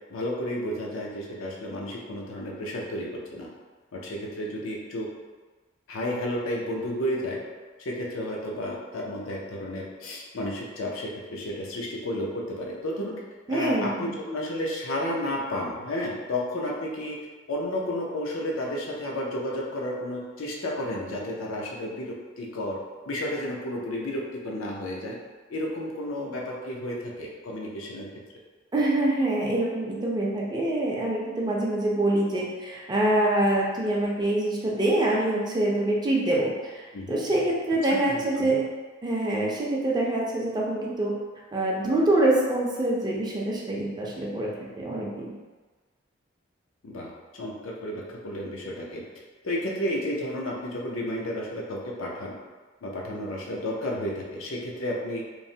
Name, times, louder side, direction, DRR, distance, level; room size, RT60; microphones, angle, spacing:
voice 1, 0.1-3.5 3.9-5.1 5.9-7.4 7.8-13.2 13.5-17.2 17.5-22.8 23.1-25.2 25.5-28.1 36.9-37.2 37.9-38.5 46.8-49.0 49.4-52.4 52.8-55.2, left 1 dB, 85° left, -2 dB, 0.5 m, -32 dB
voice 2, 13.5-14.1 28.7-38.6 39.0-41.1 41.5-44.5 44.7-45.3, right 1 dB, 20° right, -3 dB, 0.4 m, -25 dB
3.0 x 2.0 x 2.7 m, 1.3 s
head